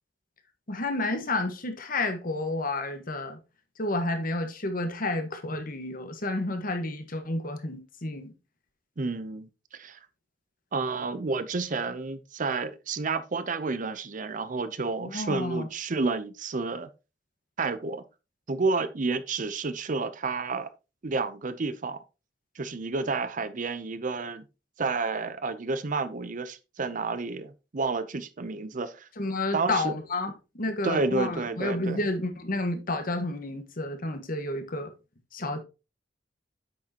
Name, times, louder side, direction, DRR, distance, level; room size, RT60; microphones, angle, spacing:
voice 1, 0.7-3.4 3.8-8.3 15.0-15.7 29.2-34.9 35.3-35.6, left 2 dB, 50° left, 1.3 m, -30 dB
voice 2, 9.0-10.0 10.7-16.9 17.6-18.0 18.5-20.7 21.0-22.0 22.6-24.4 24.8-29.1 29.5-30.0 30.8-32.0, right 4 dB, 45° right, 0.6 m, -30 dB
8.6 x 6.3 x 2.9 m
head